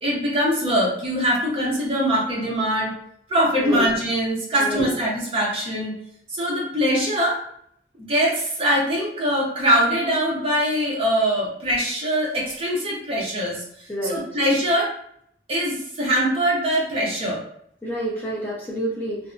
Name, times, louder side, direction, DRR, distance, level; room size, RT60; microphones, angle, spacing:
voice 1, 0.0-2.9 3.3-5.9 6.3-7.4 8.1-14.9 15.5-17.4, equal, 30° right, -3 dB, 0.7 m, -22 dB
voice 2, 13.9-14.2 17.8-19.2, equal, 10° left, -6 dB, 0.6 m, -28 dB
2.7 x 2.0 x 2.5 m, 0.68 s
head